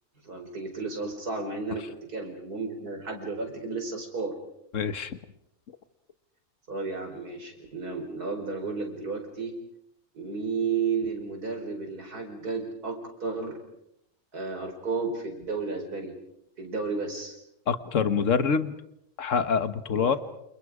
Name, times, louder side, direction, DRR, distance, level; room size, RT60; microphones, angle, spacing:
voice 1, 0.2-4.3 6.7-9.6 10.1-13.6 14.3-16.1 16.6-17.4 19.9-20.2, right 4 dB, 90° right, 4 dB, 5.2 m, -33 dB
voice 2, 4.7-5.2 17.7-18.7 19.2-20.2, left 6 dB, 55° left, 11 dB, 1.7 m, -25 dB
29.0 x 28.5 x 5.0 m, 0.78 s
omnidirectional pair, 1.6 m